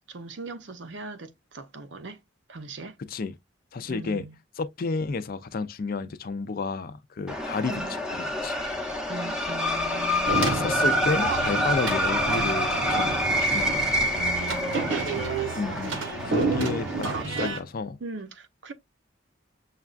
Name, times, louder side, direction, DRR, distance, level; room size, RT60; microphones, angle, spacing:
voice 1, 0.0-2.2 2.5-3.0 3.8-4.4 7.7-8.0 9.1-10.8 14.2-15.0 16.0-16.7 18.0-18.7, right 3 dB, 65° right, 0.7 m, -40 dB
voice 2, 3.7-4.2 4.6-8.6 10.4-14.0 15.5-18.0, left 4 dB, 50° left, 0.4 m, -31 dB
sound 1, 7.3-17.2, equal, 5° right, 0.7 m, -27 dB
sound 2, 10.3-17.6, right 3 dB, 85° right, 1.0 m, -30 dB
6.4 x 2.3 x 2.4 m
head